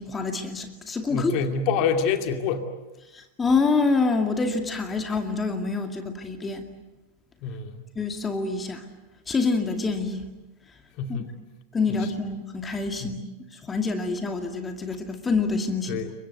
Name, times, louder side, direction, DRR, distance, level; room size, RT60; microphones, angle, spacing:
voice 1, 0.0-1.3 3.1-6.6 8.0-8.8 9.3-10.2 11.1-11.2 11.7-13.2 13.5-16.0, left 4 dB, 15° left, 5 dB, 2.3 m, -26 dB
voice 2, 1.1-2.7 7.4-7.8 11.0-11.3 13.0-13.2 15.9-16.1, left 6 dB, 40° left, 6 dB, 2.5 m, -26 dB
29.5 x 23.5 x 8.0 m, 1.1 s
figure-of-eight pair, 90°, 0 cm